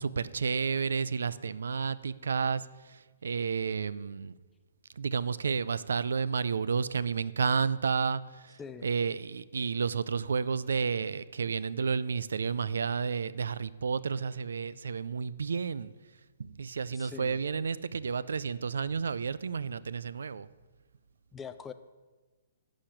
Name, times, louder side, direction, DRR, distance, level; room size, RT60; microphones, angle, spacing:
voice 1, 0.0-4.3 5.0-15.9 16.4-20.5, right 5 dB, 90° right, 18 dB, 0.5 m, -31 dB
voice 2, 16.9-17.4 21.3-21.7, left 6 dB, 10° left, 10 dB, 0.3 m, -43 dB
11.5 x 5.0 x 8.5 m, 1.3 s
hypercardioid pair, 170°, 0 cm